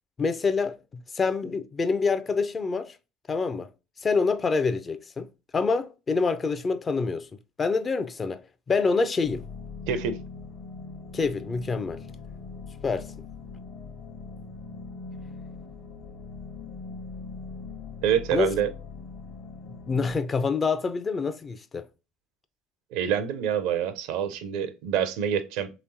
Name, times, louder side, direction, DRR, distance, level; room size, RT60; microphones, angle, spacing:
voice 1, 0.2-3.0 3.3-3.7 4.0-7.3 7.6-9.5 11.1-12.0 12.8-13.1 18.3-18.5 19.9-21.9, left 4 dB, 30° left, 0.4 m, -26 dB
sound 1, 9.2-20.2, left 4 dB, 55° left, 1.0 m, -41 dB
voice 2, 9.9-10.2 18.0-18.7 22.9-25.7, right 9 dB, 60° right, 0.5 m, -26 dB
3.2 x 3.0 x 2.6 m
hypercardioid pair, 65°, 0 cm